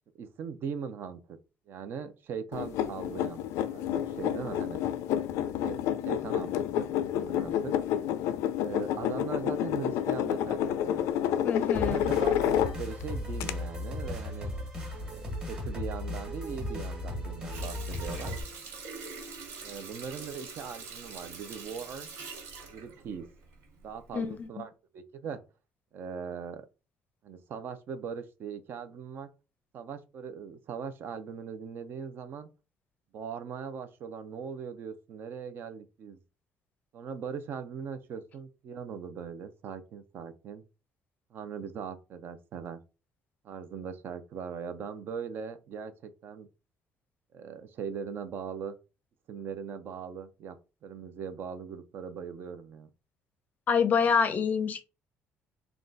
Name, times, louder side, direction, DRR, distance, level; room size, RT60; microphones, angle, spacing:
voice 1, 0.2-1.4 1.7-3.4 3.7-4.8 5.6-5.8 6.1-7.8 8.6-11.1 11.7-14.5 15.1-18.4 19.6-22.1 22.7-23.3 23.8-25.4 25.9-26.6 27.2-29.3 29.7-32.5 33.1-36.2 36.9-40.6 41.3-42.8 43.4-46.5 47.3-48.8 49.3-50.6 50.8-52.9, right 6 dB, 50° right, 0.5 m, -40 dB
sound 1, 2.5-13.0 13.4-13.5, left 10 dB, 90° left, 0.4 m, -29 dB
voice 2, 11.4-12.0 24.1-24.5 53.7-54.8, left 6 dB, 35° left, 0.5 m, -26 dB
sound 2, 11.7-18.4, left 1 dB, 15° right, 1.3 m, -36 dB
Water tap faucet, 17.5-23.9 24.3-24.4, right 5 dB, 75° right, 1.6 m, -44 dB
3.7 x 2.3 x 3.8 m
cardioid pair, 160°, 5 cm